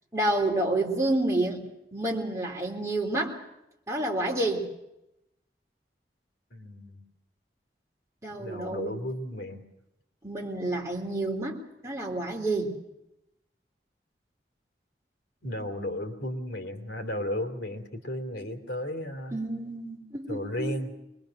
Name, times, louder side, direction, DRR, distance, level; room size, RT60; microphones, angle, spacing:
voice 1, 0.1-3.4 3.9-4.7 8.2-9.0 10.2-12.8 19.3-20.8, right 2 dB, 20° right, -1 dB, 3.5 m, -29 dB
voice 2, 6.5-7.0 8.3-9.6 15.4-19.4 20.3-20.9, left 1 dB, 75° left, 5 dB, 2.9 m, -34 dB
24.0 x 22.0 x 6.5 m, 0.87 s
head